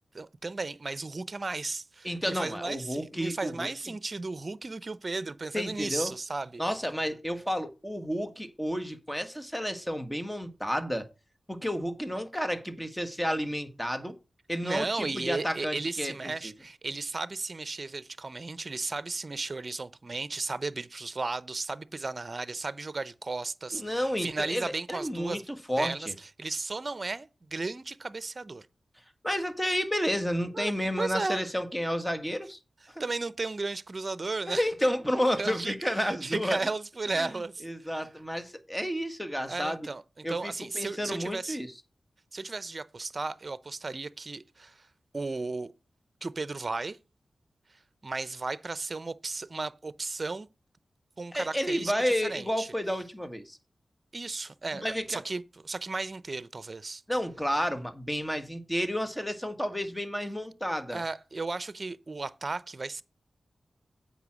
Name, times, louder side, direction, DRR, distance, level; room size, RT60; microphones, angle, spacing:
voice 1, 0.1-6.6 14.6-25.5 25.8-28.7 30.5-30.7 31.0-31.5 33.0-34.7 35.4-38.1 39.5-41.6 42.3-44.9 45.1-45.7 46.2-47.0 48.0-50.5 51.2-52.7 54.1-57.0 60.9-63.0, right 3 dB, 45° right, 0.7 m, -35 dB
voice 2, 2.0-3.7 5.5-6.1 6.6-11.1 11.5-14.1 14.5-16.1 16.4-16.5 23.7-25.9 29.2-32.6 34.5-36.6 37.2-37.3 37.6-39.8 40.2-41.7 51.3-53.6 54.8-55.2 57.1-61.0, equal, 10° left, 1.9 m, -31 dB
8.2 x 5.5 x 6.2 m
cardioid pair, 40°, 0 cm